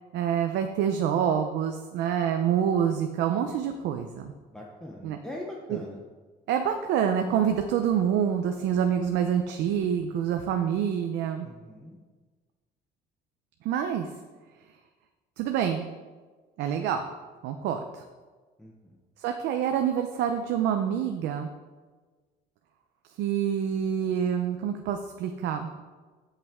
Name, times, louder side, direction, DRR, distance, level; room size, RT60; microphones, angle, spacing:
voice 1, 0.1-4.3 5.0-5.2 5.7-5.8 6.5-11.5 13.6-14.1 15.4-15.8 16.6-17.1 17.4-18.0 19.2-21.5 23.2-25.8, right 8 dB, 90° right, 5 dB, 0.7 m, -27 dB
voice 2, 4.5-6.0 11.4-12.0 18.6-19.0, left 1 dB, 5° left, -2 dB, 0.9 m, -41 dB
16.0 x 5.7 x 3.6 m, 1.4 s
cardioid pair, 165°, 18 cm